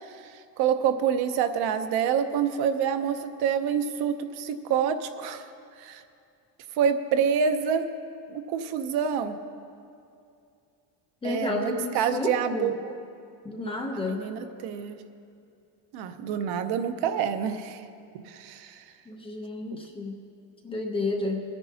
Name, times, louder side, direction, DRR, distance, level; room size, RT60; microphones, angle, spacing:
voice 1, 0.2-5.5 5.8-6.0 6.8-7.9 8.3-9.4 11.2-13.0 14.1-14.9 15.9-17.8 18.3-18.8, right 7 dB, 65° right, 9 dB, 0.8 m, -27 dB
voice 2, 11.2-12.7 13.4-14.2 19.1-20.2 20.6-21.4, left 2 dB, 15° left, 1 dB, 0.7 m, -31 dB
20.5 x 9.9 x 2.8 m, 2.5 s
cardioid pair, 175°, 43 cm